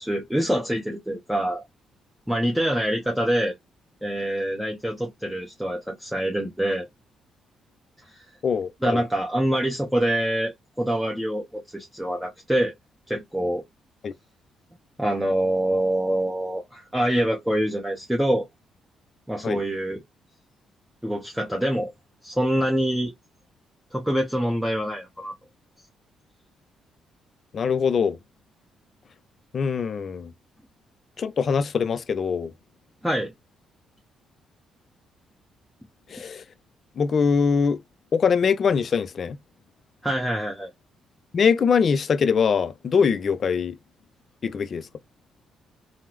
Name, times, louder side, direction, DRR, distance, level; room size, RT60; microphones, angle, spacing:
voice 1, 0.0-1.6 2.3-3.5 4.0-6.9 8.8-12.7 13.1-13.6 15.0-18.5 19.3-20.0 21.0-21.9 22.2-23.1 23.9-25.3 33.0-33.3 40.0-40.7, right 1 dB, 5° right, 0.8 m, -25 dB
voice 2, 8.4-9.0 14.0-14.1 19.4-19.6 27.5-28.2 29.5-30.3 31.2-32.5 36.1-36.4 37.0-37.8 38.1-39.4 41.3-43.8 44.4-44.9, left 6 dB, 50° left, 0.4 m, -22 dB
3.5 x 2.0 x 3.0 m
cardioid pair, 90°, 0 cm